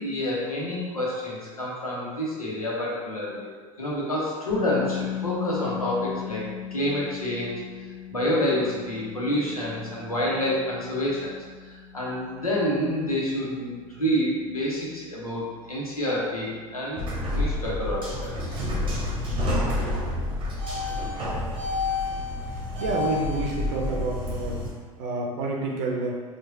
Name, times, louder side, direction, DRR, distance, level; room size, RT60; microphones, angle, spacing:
voice 1, 0.0-3.5 3.8-6.4 6.7-7.6 8.1-11.4 11.6-18.6, left 1 dB, 85° left, -5 dB, 1.0 m, -28 dB
sound 1, 4.5-16.3, left 9 dB, 65° left, 1.4 m, -38 dB
sound 2, 17.0-24.7, left 2 dB, 30° right, 1.0 m, -28 dB
voice 2, 22.8-24.7 25.0-26.2, right 3 dB, 55° right, -1 dB, 0.6 m, -29 dB
4.6 x 2.5 x 2.7 m, 1.5 s
figure-of-eight pair, 75°, 18 cm